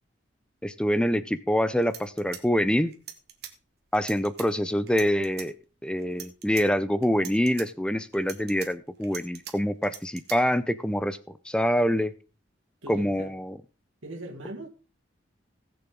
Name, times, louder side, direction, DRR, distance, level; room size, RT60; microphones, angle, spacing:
voice 1, 0.6-2.9 3.9-5.6 5.8-11.2 11.5-12.1 12.9-13.5, equal, 5° left, 0.5 m, -25 dB
sound 1, 1.5-1.6 1.8-3.5 3.9-4.5 4.9-5.5 6.0-6.6 7.0-7.7 8.1-9.5 9.8-10.4, right 10 dB, 55° right, 1.6 m, -42 dB
voice 2, 12.8-13.3 14.0-14.7, right 1 dB, 85° right, 2.1 m, -39 dB
19.0 x 6.9 x 3.8 m
head